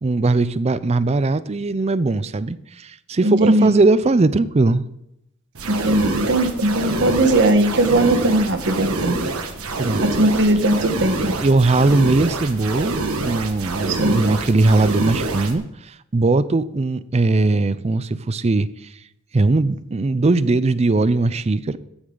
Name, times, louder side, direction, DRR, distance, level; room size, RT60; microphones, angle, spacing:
voice 1, 0.0-4.8 9.8-10.0 11.3-18.9 19.3-21.8, right 3 dB, 30° right, 16 dB, 0.4 m, -19 dB
voice 2, 3.2-3.8 5.6-9.2 10.0-11.3 13.9-14.2, right 1 dB, 55° right, 7 dB, 1.3 m, -19 dB
sound 1, 5.5-15.5, right 2 dB, 80° right, 1.4 m, -26 dB
14.5 x 9.6 x 3.9 m, 0.83 s
head